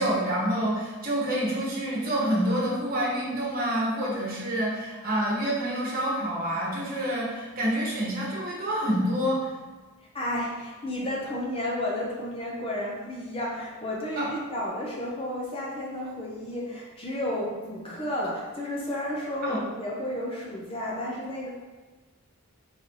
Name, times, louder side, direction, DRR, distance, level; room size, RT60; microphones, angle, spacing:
voice 1, 0.0-9.5 14.2-14.3 19.4-19.6, right 1 dB, 40° right, -5 dB, 1.2 m, -27 dB
voice 2, 10.1-21.5, left 1 dB, 25° left, -4 dB, 0.6 m, -32 dB
3.9 x 3.9 x 3.1 m, 1.3 s
head